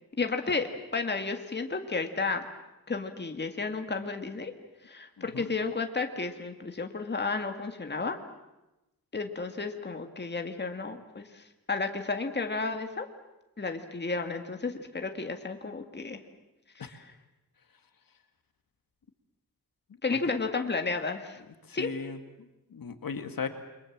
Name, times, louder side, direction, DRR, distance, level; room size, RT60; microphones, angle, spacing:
voice 1, 0.2-2.5 2.9-4.5 4.8-8.2 9.1-13.1 13.6-16.2 16.8-17.0 20.0-21.4 21.7-21.9, left 4 dB, 30° left, 5 dB, 2.0 m, -32 dB
voice 2, 5.2-5.5 16.8-16.9 20.1-20.3 21.7-23.5, left 5 dB, 70° left, 8 dB, 2.0 m, -37 dB
29.5 x 23.5 x 7.4 m, 0.98 s
wide cardioid pair, 145°, 35 cm